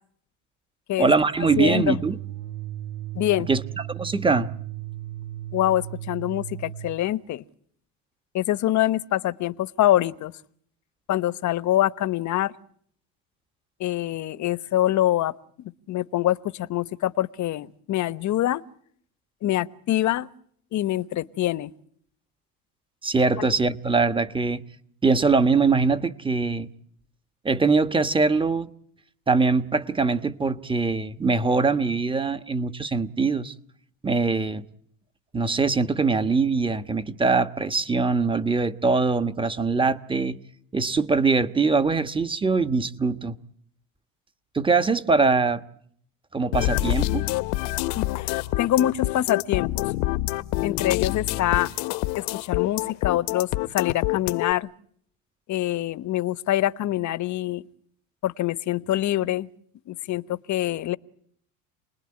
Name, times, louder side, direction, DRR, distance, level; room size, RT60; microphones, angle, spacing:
voice 1, 1.0-2.2 3.5-3.6 3.9-4.5 23.0-24.6 25.0-26.7 27.4-28.7 29.3-33.5 34.0-34.6 35.3-40.4 40.7-43.4 44.5-45.6 46.3-47.2, right 4 dB, 10° right, 1.2 m, -22 dB
sound 1, 1.4-7.0, right 13 dB, 80° right, 1.7 m, -36 dB
voice 2, 1.6-2.0 3.1-3.5 5.5-7.4 8.3-10.3 11.1-12.5 13.8-15.3 15.9-18.6 19.4-20.3 20.7-21.7 23.4-23.5 47.9-49.9 50.6-51.7 52.2-54.7 55.5-57.6 58.2-59.5 59.9-61.0, left 13 dB, 45° left, 1.1 m, -25 dB
sound 2, 46.5-54.5, left 17 dB, 70° left, 1.2 m, -26 dB
29.0 x 20.5 x 9.8 m
supercardioid pair, 110°, 40 cm